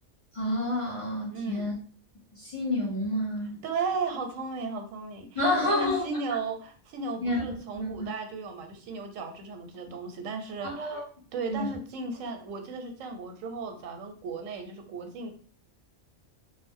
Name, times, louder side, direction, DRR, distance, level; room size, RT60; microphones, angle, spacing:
voice 1, 0.3-1.7 2.3-3.5 5.3-6.1 7.2-8.1 10.6-11.0 11.5-11.7, left 1 dB, 30° left, -5 dB, 0.7 m, -29 dB
voice 2, 1.3-1.7 3.6-11.0 11.3-15.3, right 4 dB, 90° right, 5 dB, 1.0 m, -35 dB
2.5 x 2.0 x 3.4 m, 0.43 s
omnidirectional pair, 1.3 m